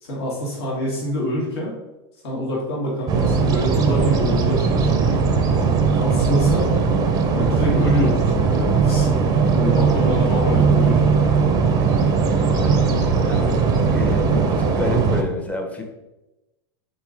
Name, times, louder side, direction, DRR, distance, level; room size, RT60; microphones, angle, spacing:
voice 1, 0.0-1.7 2.2-5.4 6.0-6.7 7.3-9.2 9.6-11.0, equal, 75° left, -3 dB, 1.4 m, -25 dB
sound 1, 3.1-15.2, right 5 dB, 30° right, 0.5 m, -19 dB
voice 2, 12.5-12.9 13.2-13.6 13.8-15.8, left 2 dB, 10° left, 2 dB, 0.7 m, -29 dB
3.9 x 2.9 x 3.6 m, 1.0 s
hypercardioid pair, 110°, 13 cm